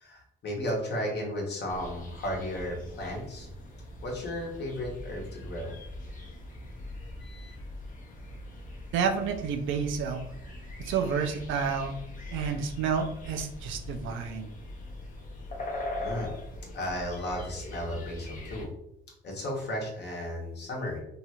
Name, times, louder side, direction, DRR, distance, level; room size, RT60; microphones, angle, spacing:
voice 1, 0.0-3.5 4.0-5.7 7.2-7.5 16.0-16.3 16.7-18.7 19.2-21.0, left 1 dB, 60° left, -1 dB, 1.0 m, -34 dB
sound 1, 1.7-18.7, left 1 dB, 40° left, 0.6 m, -41 dB
voice 2, 8.9-10.3 10.8-12.0 12.3-14.5, right 6 dB, 80° right, 6 dB, 0.4 m, -30 dB
2.7 x 2.3 x 2.8 m, 0.78 s
cardioid pair, 90°, 20 cm